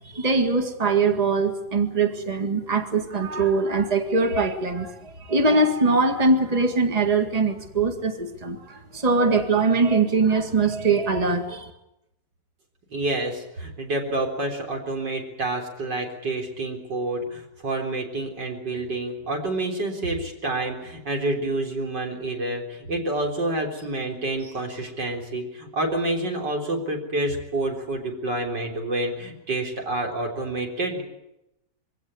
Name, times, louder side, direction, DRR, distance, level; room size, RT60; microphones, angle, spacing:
voice 1, 0.1-11.7, right 3 dB, 20° right, 5 dB, 1.9 m, -22 dB
voice 2, 12.9-31.0, right 2 dB, 90° right, 1 dB, 4.4 m, -28 dB
23.5 x 16.5 x 9.7 m, 0.89 s
omnidirectional pair, 1.8 m